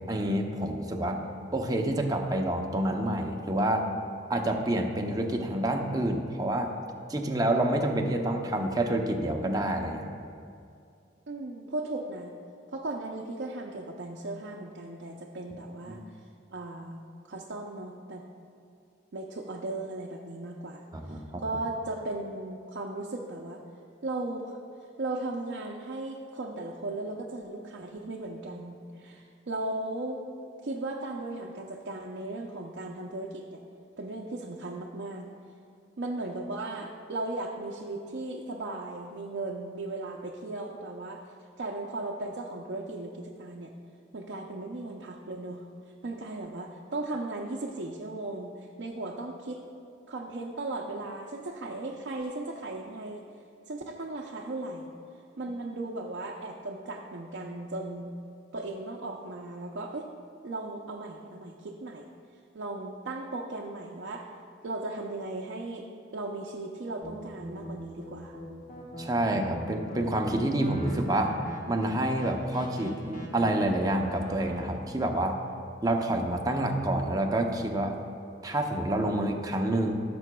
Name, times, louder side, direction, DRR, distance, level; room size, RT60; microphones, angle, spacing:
voice 1, 0.1-1.2 1.5-3.9 4.3-6.7 7.1-10.1 15.9-16.0 20.9-21.4 69.0-71.4 71.7-75.4 75.8-78.0 78.4-80.0, right 1 dB, 20° right, 2 dB, 0.6 m, -28 dB
voice 2, 11.3-12.3 12.7-16.0 16.5-17.0 17.3-18.2 19.1-23.6 24.0-24.6 25.0-30.2 30.6-33.6 34.0-35.3 36.0-41.2 41.6-43.7 44.1-45.6 46.0-49.6 50.1-53.3 53.7-54.9 55.4-58.2 58.5-60.1 60.4-62.1 62.5-64.3 64.6-65.9 66.1-68.4, right 2 dB, 65° right, -1 dB, 0.6 m, -36 dB
sound 1, 67.0-74.7, equal, 45° left, 1.3 m, -43 dB
15.5 x 6.8 x 2.3 m, 2.4 s
head